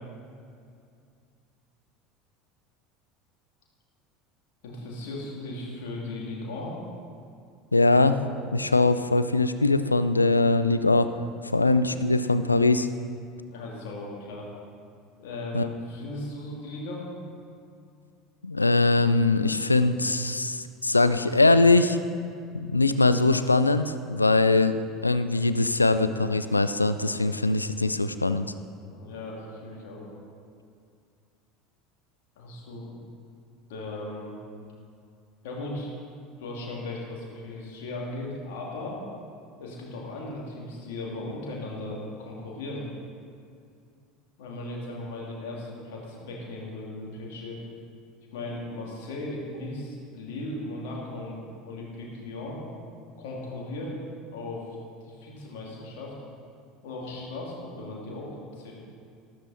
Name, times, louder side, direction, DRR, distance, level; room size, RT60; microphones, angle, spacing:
voice 1, 4.6-6.8 11.6-11.7 13.5-14.5 15.2-17.0 28.9-30.1 32.4-32.9 33.7-34.3 35.4-35.9 36.4-39.0 39.6-42.8 44.4-47.6 48.3-52.6 53.2-54.0 54.3-54.8 55.0-56.1 56.8-58.7, left 2 dB, 60° left, -3 dB, 2.9 m, -37 dB
voice 2, 7.7-8.2 8.5-11.1 11.5-12.9 15.5-15.7 18.4-22.0 22.5-28.5, left 2 dB, 85° left, 12 dB, 0.4 m, -22 dB
13.5 x 13.0 x 4.3 m, 2.4 s
figure-of-eight pair, 70°, 0 cm